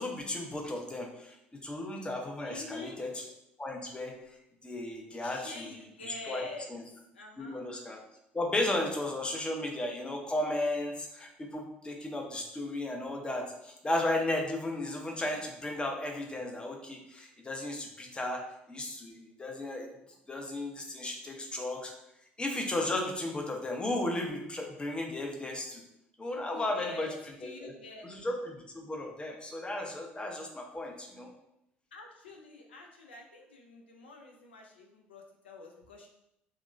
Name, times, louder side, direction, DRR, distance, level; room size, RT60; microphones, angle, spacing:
voice 1, 0.0-3.2 3.6-4.2 4.6-5.7 6.0-6.8 7.4-8.0 8.3-19.9 20.3-21.9 22.4-25.8 26.2-27.1 27.6-27.7 28.0-31.3, left 1 dB, 15° left, 2 dB, 0.5 m, -35 dB
voice 2, 2.4-3.0 5.2-6.7 7.1-7.6 26.3-27.1 27.4-28.1 31.9-36.1, left 2 dB, 80° left, 2 dB, 0.4 m, -46 dB
2.8 x 2.0 x 2.4 m, 0.82 s
figure-of-eight pair, 55°, 6 cm